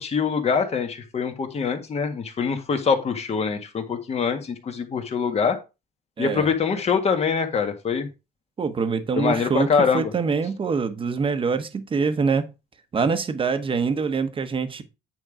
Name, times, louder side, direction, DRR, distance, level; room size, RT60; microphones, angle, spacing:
voice 1, 0.0-5.6 6.2-8.1 9.2-10.1, left 5 dB, 40° left, 1.7 m, -24 dB
voice 2, 6.2-6.5 8.6-12.5 12.9-14.8, right 5 dB, 30° right, 1.2 m, -24 dB
9.2 x 3.7 x 5.0 m
cardioid pair, 110°, 17 cm